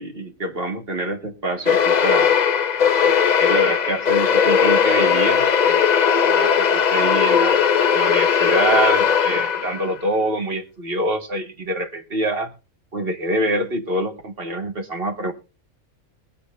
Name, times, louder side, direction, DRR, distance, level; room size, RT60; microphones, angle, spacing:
voice 1, 0.0-2.3 3.0-5.9 6.2-7.6 7.9-12.5 12.9-15.3, right 1 dB, 45° right, 4 dB, 2.0 m, -25 dB
sound 1, 1.7-9.9, left 7 dB, 45° left, 0.6 m, -18 dB
22.5 x 8.1 x 2.6 m, 0.31 s
omnidirectional pair, 1.4 m